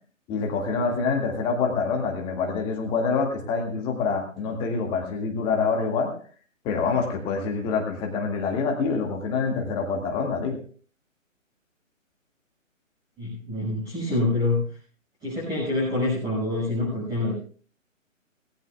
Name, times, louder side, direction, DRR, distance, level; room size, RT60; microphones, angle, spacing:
voice 1, 0.3-6.1 6.6-10.6, left 4 dB, 10° left, 2 dB, 2.0 m, -26 dB
voice 2, 13.2-14.6 15.2-17.4, left 2 dB, 10° right, -6 dB, 6.0 m, -26 dB
19.5 x 17.5 x 2.4 m, 0.43 s
figure-of-eight pair, 140°, 40 cm